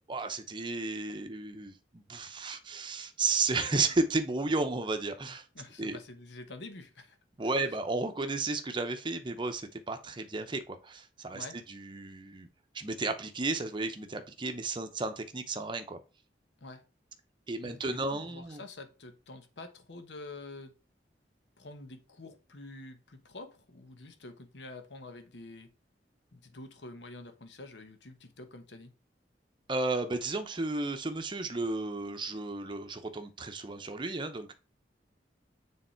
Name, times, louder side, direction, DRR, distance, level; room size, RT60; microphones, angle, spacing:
voice 1, 0.1-5.4 5.8-6.0 7.4-12.5 12.7-16.0 17.5-18.6 29.7-34.5, right 3 dB, 25° right, 0.7 m, -33 dB
voice 2, 5.5-7.2 11.3-11.6 16.6-16.8 17.6-20.7 21.6-25.7 26.3-28.9, left 2 dB, 75° left, 1.1 m, -47 dB
6.8 x 3.6 x 4.4 m
head